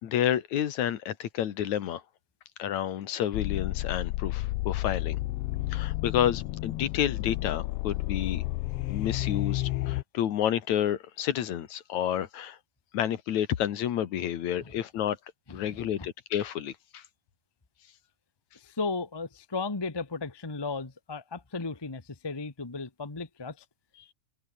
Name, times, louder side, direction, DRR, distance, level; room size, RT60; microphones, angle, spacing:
voice 1, 0.0-2.0 2.6-5.2 5.7-8.4 8.9-12.6 12.9-15.2 15.5-17.0, left 10 dB, 75° left, 2.8 m, -30 dB
sound 1, 3.3-10.0, left 17 dB, 90° left, 1.3 m, -31 dB
voice 2, 15.5-16.1 18.5-23.6, left 4 dB, 30° left, 0.4 m, -35 dB
omnidirectional pair, 3.4 m